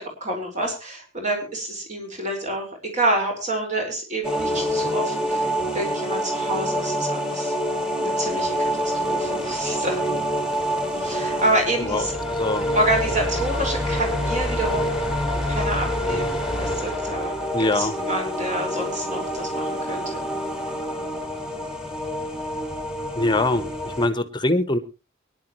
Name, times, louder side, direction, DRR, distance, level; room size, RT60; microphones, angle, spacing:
voice 1, 0.0-2.7 2.9-7.5 8.0-10.0 10.9-12.2 12.7-15.0 15.4-17.3 17.6-20.2, right 1 dB, 40° right, 2 dB, 5.1 m, -28 dB
sound 1, 4.2-24.1, equal, 5° right, 2.2 m, -26 dB
voice 2, 12.4-12.7 17.5-17.9 23.2-24.8, left 2 dB, 25° left, 11 dB, 1.1 m, -23 dB
23.5 x 10.5 x 3.1 m, 0.29 s
head